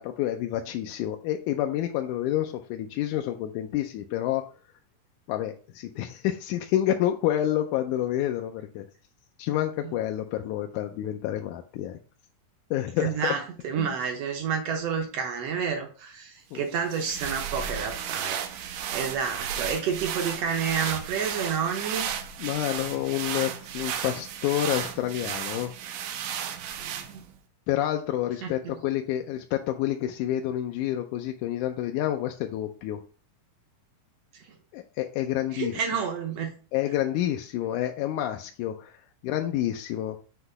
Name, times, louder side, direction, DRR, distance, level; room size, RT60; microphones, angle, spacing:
voice 1, 0.0-4.5 5.3-8.9 9.4-12.0 12.7-13.2 13.8-14.0 16.5-16.6 22.4-25.7 27.7-33.0 34.7-35.7 36.7-38.9 39.2-40.2, left 12 dB, 80° left, 5 dB, 1.8 m, -28 dB
voice 2, 13.0-22.1 26.8-27.2 28.4-28.8 34.3-34.4 35.5-36.5, right 6 dB, 75° right, 3 dB, 1.5 m, -30 dB
sound 1, 16.7-27.4, right 9 dB, 90° right, 2.5 m, -34 dB
8.0 x 2.9 x 5.3 m, 0.39 s
omnidirectional pair, 4.0 m